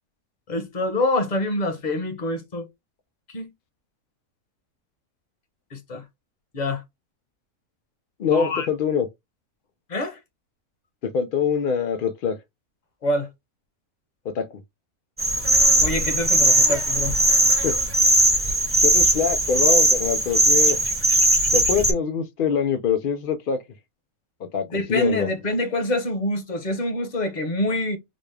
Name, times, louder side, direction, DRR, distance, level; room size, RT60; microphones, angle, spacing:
voice 1, 0.5-2.7 3.3-3.5 5.7-6.0 6.5-6.8 8.3-8.7 9.9-10.2 13.0-13.3 15.8-17.1 24.7-28.0, left 1 dB, 35° left, 0.8 m, -26 dB
voice 2, 8.2-9.1 11.0-12.4 14.2-14.6 17.6-17.7 18.8-20.9 21.5-23.6 24.5-25.3, left 6 dB, 85° left, 0.4 m, -24 dB
sound 1, 15.2-21.9, right 1 dB, 10° right, 0.7 m, -19 dB
4.1 x 2.3 x 3.3 m
omnidirectional pair, 1.6 m